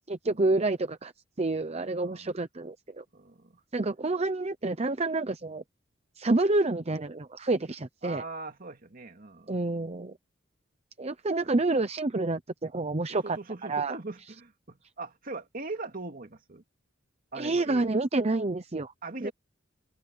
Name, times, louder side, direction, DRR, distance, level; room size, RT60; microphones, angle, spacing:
voice 1, 0.1-1.1 1.4-3.0 3.7-5.6 6.2-8.2 9.5-10.1 11.0-13.4 13.7-14.0 17.4-18.9 19.2-19.3, right 2 dB, 35° right, 0.8 m, -28 dB
voice 2, 2.0-2.3 3.1-3.6 8.0-9.5 13.2-16.6 17.3-18.0 19.0-19.3, right 3 dB, 50° right, 2.5 m, -40 dB
head